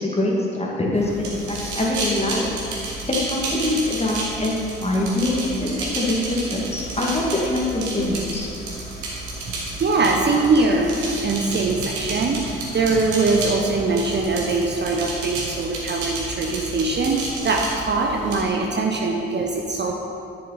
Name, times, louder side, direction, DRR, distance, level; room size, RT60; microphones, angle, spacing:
voice 1, 0.0-2.4 3.1-4.5 4.8-8.5, left 1 dB, 20° left, -3 dB, 2.1 m, -24 dB
sound 1, 0.9-18.4, right 2 dB, 60° right, 2.2 m, -31 dB
voice 2, 9.8-19.9, right 3 dB, 30° right, 1 dB, 0.9 m, -22 dB
10.5 x 7.0 x 4.2 m, 2.6 s
figure-of-eight pair, 45°, 33 cm